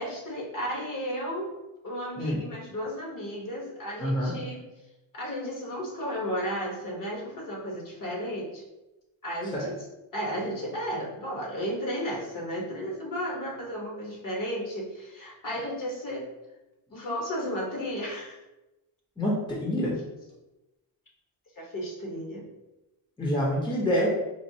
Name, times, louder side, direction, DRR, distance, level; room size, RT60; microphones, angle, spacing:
voice 1, 0.0-1.5 1.8-4.6 5.1-8.6 9.2-9.6 10.1-16.3 16.9-18.4 21.6-22.4, equal, 40° left, -2 dB, 1.1 m, -33 dB
voice 2, 4.0-4.3 9.5-9.7 19.2-19.9 23.2-24.1, equal, 10° left, -5 dB, 0.7 m, -26 dB
4.3 x 2.5 x 2.7 m, 0.99 s
cardioid pair, 105°, 49 cm